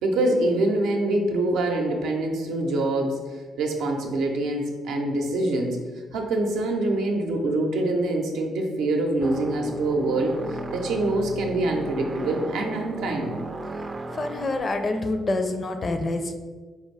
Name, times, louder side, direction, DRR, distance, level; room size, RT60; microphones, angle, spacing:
voice 1, 0.0-3.2 3.6-5.8 6.1-13.4, right 2 dB, 85° right, 2 dB, 0.6 m, -25 dB
sound 1, 9.2-14.6, right 2 dB, 25° right, 0.3 m, -34 dB
voice 2, 14.1-16.3, left 2 dB, 40° left, 6 dB, 0.4 m, -27 dB
4.8 x 2.5 x 3.3 m, 1.4 s
cardioid pair, 90°, 0 cm